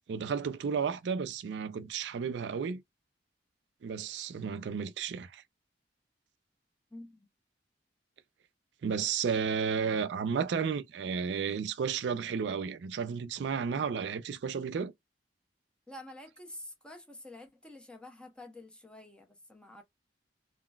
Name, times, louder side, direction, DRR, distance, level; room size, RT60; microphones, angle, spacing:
voice 1, 0.1-2.8 3.8-5.4 8.8-14.9, right 6 dB, 70° right, 0.4 m, -32 dB
voice 2, 6.9-7.3 15.9-19.8, left 1 dB, 5° left, 0.7 m, -48 dB
3.8 x 2.1 x 2.2 m
head